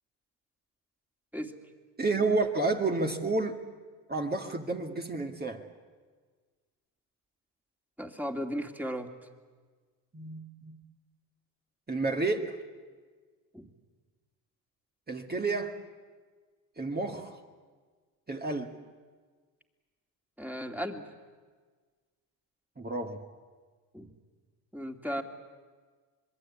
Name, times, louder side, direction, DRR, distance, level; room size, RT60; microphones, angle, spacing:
voice 1, 2.0-3.6 4.1-5.7 10.1-10.8 11.9-12.6 15.1-15.8 16.8-17.4 18.3-18.7 22.8-23.2, right 3 dB, 20° right, 3 dB, 2.1 m, -30 dB
voice 2, 8.0-9.1 13.5-13.7 20.4-21.1 23.9-24.1 24.7-25.2, equal, 5° right, 4 dB, 2.6 m, -35 dB
26.5 x 21.5 x 8.7 m, 1.5 s
supercardioid pair, 80°, 44 cm